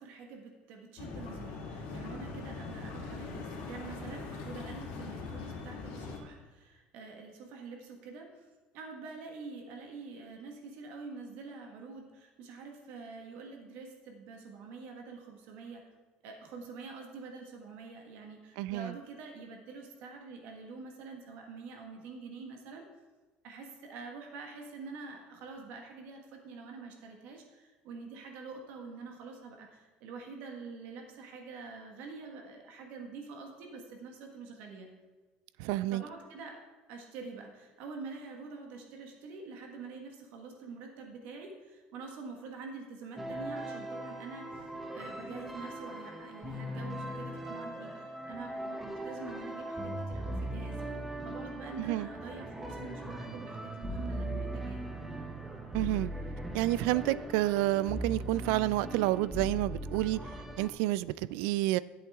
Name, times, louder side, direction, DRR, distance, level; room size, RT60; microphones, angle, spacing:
voice 1, 0.0-8.4 8.7-15.9 16.2-22.8 23.4-34.9 35.8-44.6 44.9-50.9 51.2-54.8, right 4 dB, 60° right, 1.5 m, -46 dB
sound 1, 1.0-6.2, left 4 dB, 75° left, 2.3 m, -41 dB
voice 2, 18.6-18.9 35.6-36.0 51.8-52.1 55.7-56.1 56.5-60.2 60.6-61.8, right 16 dB, 80° right, 0.3 m, -29 dB
sound 2, 43.2-60.7, right 1 dB, 5° right, 0.8 m, -39 dB
13.0 x 7.9 x 3.6 m
cardioid pair, 175°, 4 cm